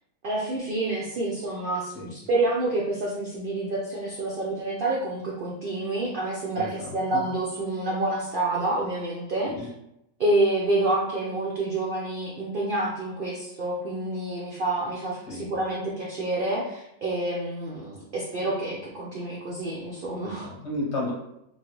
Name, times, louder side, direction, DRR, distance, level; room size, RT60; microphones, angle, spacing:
voice 1, 0.2-9.7 10.2-20.5, right 2 dB, 75° right, -4 dB, 0.5 m, -28 dB
voice 2, 6.5-7.2 9.4-9.7 15.3-15.4 20.2-21.1, left 2 dB, 55° left, -4 dB, 1.0 m, -33 dB
3.1 x 2.3 x 2.9 m, 0.84 s
omnidirectional pair, 1.6 m